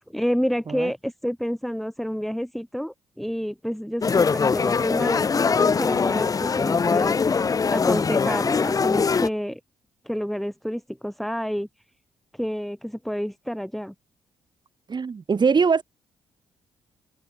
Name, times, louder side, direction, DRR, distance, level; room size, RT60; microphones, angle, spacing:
voice 1, 0.1-7.1 7.7-9.6 10.0-11.7 12.3-13.9, equal, ahead, 5.0 m, -29 dB
sound 1, 4.0-9.3, left 5 dB, 30° left, 0.5 m, -22 dB
voice 2, 14.9-15.8, right 5 dB, 40° right, 1.5 m, -22 dB
hypercardioid pair, 45°, 11 cm